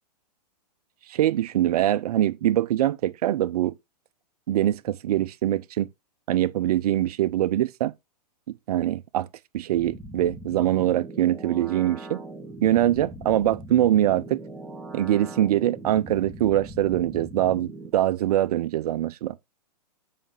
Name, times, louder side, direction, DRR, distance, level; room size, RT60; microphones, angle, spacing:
voice 1, 1.1-3.7 4.5-5.9 6.3-7.9 8.7-9.3 9.5-12.2 12.6-14.4 14.9-19.3, right 12 dB, 65° right, 0.7 m, -23 dB
sound 1, 9.7-17.9, right 1 dB, ahead, 1.2 m, -40 dB
7.8 x 5.2 x 3.7 m
hypercardioid pair, 140°, 21 cm